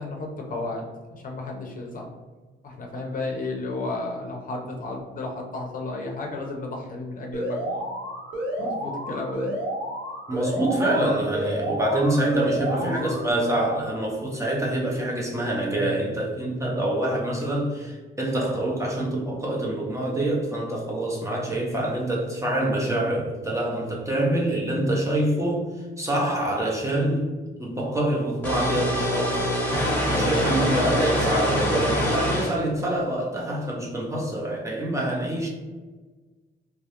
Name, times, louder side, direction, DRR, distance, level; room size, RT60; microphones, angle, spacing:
voice 1, 0.0-2.1 2.6-7.8 8.6-9.6 12.6-13.2 15.7-16.0 30.6-30.8, left 2 dB, 45° left, 0 dB, 0.5 m, -33 dB
Alarm, 7.3-13.3, equal, 65° right, 0.9 m, -31 dB
voice 2, 10.3-25.7 26.0-27.3 27.6-29.5 30.1-35.5, right 1 dB, 15° right, -3 dB, 0.5 m, -26 dB
sound 1, 28.4-32.6, equal, 10° left, 0.9 m, -24 dB
2.3 x 2.0 x 2.8 m, 1.3 s
cardioid pair, 90°, 20 cm